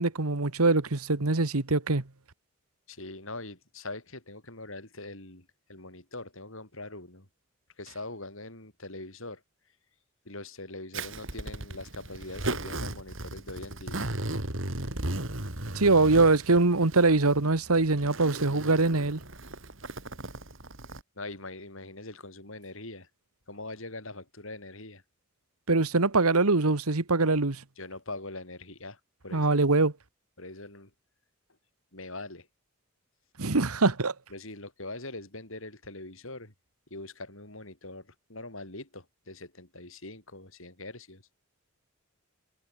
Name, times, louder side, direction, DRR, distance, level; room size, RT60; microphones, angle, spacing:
voice 1, 0.0-2.0 15.7-19.2 25.7-27.6 29.3-29.9 33.4-34.1, right 3 dB, 90° right, 1.5 m, -23 dB
voice 2, 2.9-7.3 7.8-9.4 10.3-14.1 21.2-23.1 23.5-25.0 27.8-29.7 30.4-30.9 31.9-32.5 34.3-36.5 36.9-41.2, left 2 dB, 65° left, 7.0 m, -42 dB
Zipper (clothing), 10.9-21.0, right 2 dB, 60° right, 3.6 m, -36 dB
head